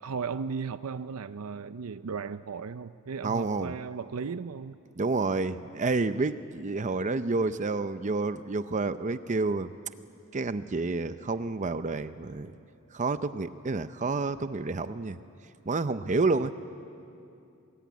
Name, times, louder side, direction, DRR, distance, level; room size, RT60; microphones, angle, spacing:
voice 1, 0.0-4.8, right 5 dB, 85° right, 12 dB, 0.6 m, -36 dB
voice 2, 3.2-3.7 5.0-9.7 10.3-12.5 12.9-15.2 15.7-16.5, right 3 dB, 35° right, 12 dB, 0.6 m, -29 dB
26.5 x 20.5 x 9.4 m, 2.6 s
head